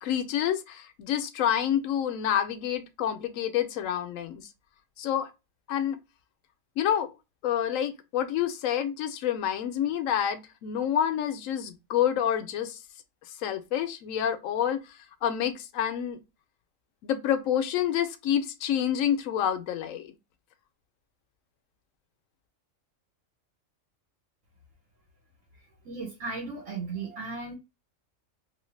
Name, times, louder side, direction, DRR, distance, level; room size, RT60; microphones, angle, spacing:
voice 1, 0.0-4.4 5.0-5.3 5.7-6.0 6.8-7.1 7.4-12.8 13.4-16.2 17.0-20.1, left 10 dB, 90° left, 1.0 m, -28 dB
voice 2, 25.8-27.6, right 4 dB, 75° right, 1.3 m, -36 dB
2.8 x 2.7 x 3.1 m
omnidirectional pair, 1.3 m